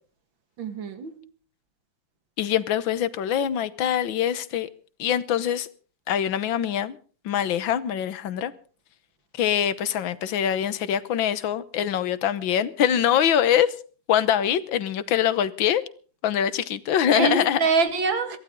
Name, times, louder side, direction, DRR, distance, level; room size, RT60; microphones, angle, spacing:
voice 1, 0.6-1.3 17.1-18.4, right 4 dB, 85° right, 9 dB, 2.5 m, -25 dB
voice 2, 2.4-4.7 5.0-5.7 6.1-7.0 7.3-8.5 9.3-13.7 14.1-15.8 16.2-17.6, left 9 dB, 90° left, 15 dB, 1.8 m, -23 dB
23.0 x 15.5 x 3.8 m, 0.40 s
omnidirectional pair, 2.0 m